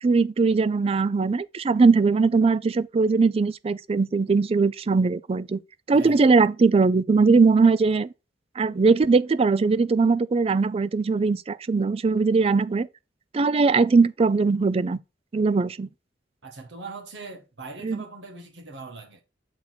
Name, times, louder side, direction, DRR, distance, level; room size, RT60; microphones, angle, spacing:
voice 1, 0.0-5.6 5.9-8.1 8.6-12.9 13.3-15.0 15.3-15.9 17.8-18.0, right 4 dB, 35° right, 0.4 m, -20 dB
voice 2, 5.9-6.3 16.4-19.2, right 3 dB, 80° right, 1.6 m, -41 dB
7.0 x 4.4 x 3.9 m
head